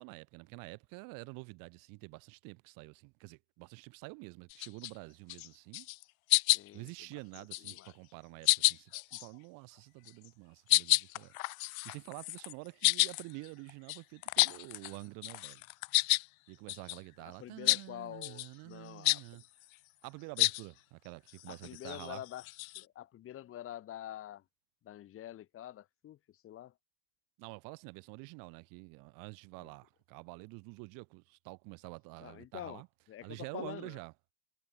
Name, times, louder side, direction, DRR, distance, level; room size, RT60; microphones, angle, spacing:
voice 1, 0.0-5.9 6.7-11.3 11.7-15.6 16.5-19.4 20.0-22.2 27.4-32.9 33.2-34.1, right 30 dB, 45° right, 3.5 m, -48 dB
sound 1, 4.5-4.9 5.3-5.5 5.7-6.0 6.3-6.9 7.3-7.9 8.4-9.3 10.1-10.3 10.7-15.0 15.2-16.3 16.7-17.0 17.7-17.8 18.2-18.5 19.0-19.2 20.4-20.6 21.3-22.8, left 22 dB, 70° left, 0.5 m, -30 dB
voice 2, 6.5-7.2 7.7-7.9 17.2-19.2 21.5-22.4 22.8-24.4 24.8-26.2 26.4-26.7 32.2-32.8 33.1-34.0, left 12 dB, 30° left, 4.2 m, -46 dB
supercardioid pair, 145°, 44 cm